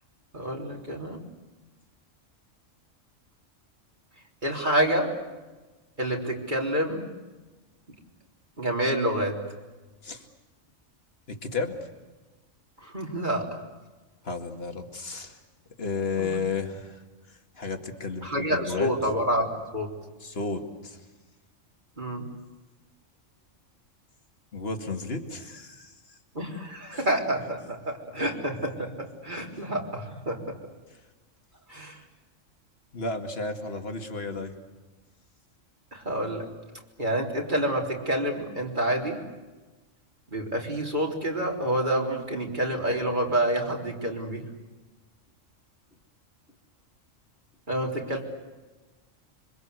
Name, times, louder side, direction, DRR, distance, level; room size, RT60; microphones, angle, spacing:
voice 1, 0.3-1.2 4.4-5.2 6.0-7.1 8.6-9.4 12.8-13.6 16.2-16.3 18.2-19.5 19.7-19.9 22.0-22.2 26.3-30.6 31.7-32.0 35.9-36.5 37.0-39.2 40.3-44.4 47.7-48.3, right 1 dB, 40° right, 0 dB, 3.9 m, -28 dB
voice 2, 11.3-11.8 14.2-15.4 15.8-17.0 17.6-18.9 20.2-21.0 24.5-26.2 26.9-27.1 32.9-34.6, left 4 dB, 50° left, 5 dB, 2.4 m, -33 dB
26.5 x 25.0 x 8.1 m, 1.2 s
omnidirectional pair, 1.3 m